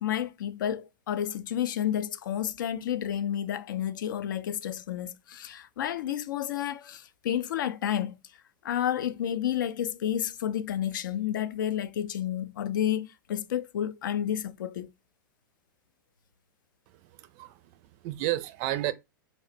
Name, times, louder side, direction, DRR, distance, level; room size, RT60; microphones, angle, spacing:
voice 1, 0.0-8.2 8.6-14.9, left 10 dB, 70° left, 0.4 m, -30 dB
voice 2, 17.0-18.9, right 15 dB, 45° right, 0.4 m, -32 dB
4.1 x 2.0 x 2.5 m
hypercardioid pair, 100°, 11 cm